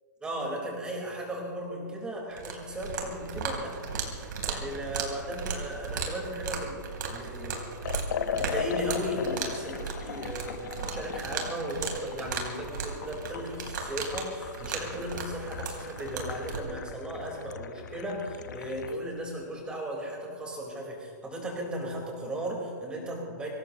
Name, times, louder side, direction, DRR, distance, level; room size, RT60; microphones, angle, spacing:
voice 1, 0.2-7.6 8.3-23.5, right 1 dB, 10° right, -2 dB, 4.2 m, -36 dB
sound 1, 2.3-16.6, right 5 dB, 70° right, 3.7 m, -36 dB
Liquid, 7.8-19.0, left 7 dB, 65° left, 0.9 m, -38 dB
25.0 x 19.0 x 3.0 m, 2.1 s
hypercardioid pair, 160°, 10 cm